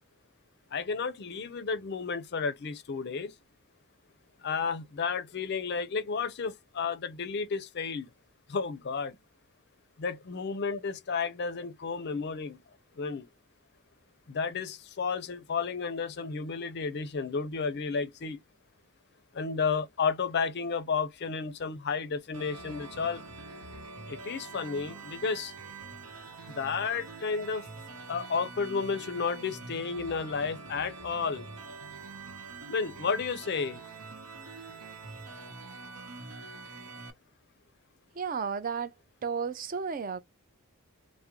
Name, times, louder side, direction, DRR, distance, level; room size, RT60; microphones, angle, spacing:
voice 1, 0.7-3.3 4.4-8.1 8.5-9.2 10.0-12.6 13.0-13.3 14.3-18.4 19.3-23.2 24.1-25.5 26.5-27.6 28.1-31.5 32.7-33.8, left 5 dB, 50° left, 0.5 m, -32 dB
sound 1, 22.3-37.1, right 4 dB, 85° right, 0.9 m, -45 dB
voice 2, 38.1-38.9 39.2-40.2, right 6 dB, 40° right, 0.4 m, -33 dB
3.5 x 2.1 x 2.9 m
head